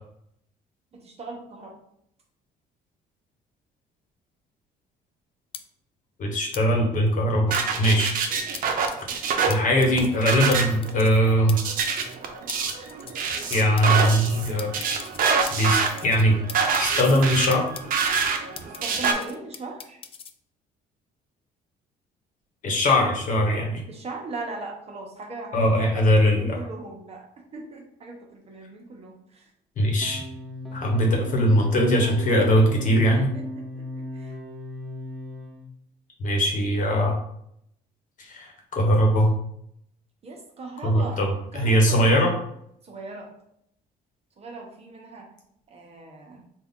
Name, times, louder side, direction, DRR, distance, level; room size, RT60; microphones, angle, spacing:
voice 1, 0.9-1.7 7.7-8.1 18.6-20.0 23.9-27.3 27.5-29.5 33.1-34.3 40.2-41.2 41.5-42.1 42.8-43.3 44.4-45.3 45.7-46.4, right 3 dB, 40° right, 1 dB, 0.9 m, -39 dB
sound 1, 5.5-5.6 6.5-6.6 7.5-8.1 8.5-8.6 8.9-9.2 9.5-9.6 9.8-10.2 10.5-10.6 10.8-11.2 11.5-11.6 11.8-12.2 12.5-12.6 12.9-13.3 13.5-14.1 14.6-16.2 16.5-17.2 17.5-18.8 19.0-20.3, left 7 dB, 35° left, 0.3 m, -40 dB
voice 2, 6.2-8.1 9.1-11.6 13.5-14.7 15.5-16.3 16.8-17.7 22.6-23.8 25.5-26.6 29.8-30.2 30.7-33.3 36.2-37.2 38.2-39.3 40.8-42.3, equal, 50° left, 1 dB, 1.1 m, -21 dB
sound 2, 7.5-19.1, right 5 dB, 55° right, 0.7 m, -26 dB
sound 3, 30.0-35.7, left 1 dB, ahead, 0.6 m, -36 dB
4.1 x 2.4 x 3.7 m, 0.72 s
cardioid pair, 110°, 17 cm